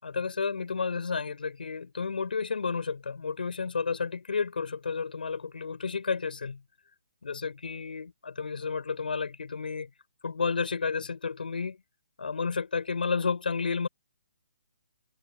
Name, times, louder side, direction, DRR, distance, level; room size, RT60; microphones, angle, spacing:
voice 1, 0.0-6.6 7.2-9.9 10.2-11.8 12.2-13.9, left 5 dB, 85° left, 5.4 m, -31 dB
hypercardioid pair, 165°, 5 cm